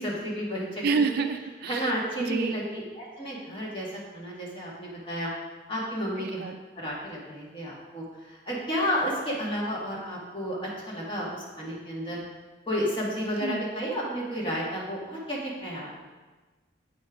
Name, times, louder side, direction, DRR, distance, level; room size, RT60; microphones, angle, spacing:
voice 1, 0.0-1.2 1.7-3.9 4.1-5.3 5.7-12.2 12.7-16.0, equal, 25° left, -5 dB, 1.7 m, -32 dB
voice 2, 0.8-1.9 2.2-2.6 6.2-6.6 13.4-13.6, right 5 dB, 50° right, 8 dB, 0.3 m, -28 dB
8.4 x 4.3 x 4.9 m, 1.3 s
head